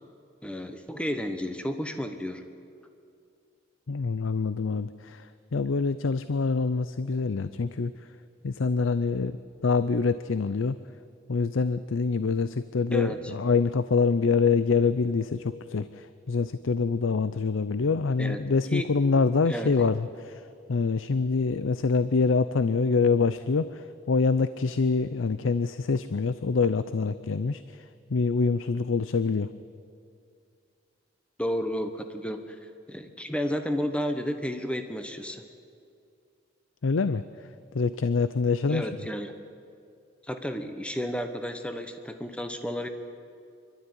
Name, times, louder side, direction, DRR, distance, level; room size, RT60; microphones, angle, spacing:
voice 1, 0.4-2.4 12.9-13.3 18.2-18.4 18.7-18.9 19.5-19.7 31.4-32.6 32.9-35.4 38.7-39.3 40.2-42.9, equal, 5° left, 7 dB, 1.1 m, -32 dB
voice 2, 3.9-5.3 5.5-7.9 8.4-9.4 9.6-10.8 11.3-20.4 20.7-27.6 28.1-29.5 36.8-37.2 37.7-38.9, left 4 dB, 85° left, 13 dB, 0.6 m, -25 dB
25.5 x 12.5 x 9.7 m, 2.4 s
head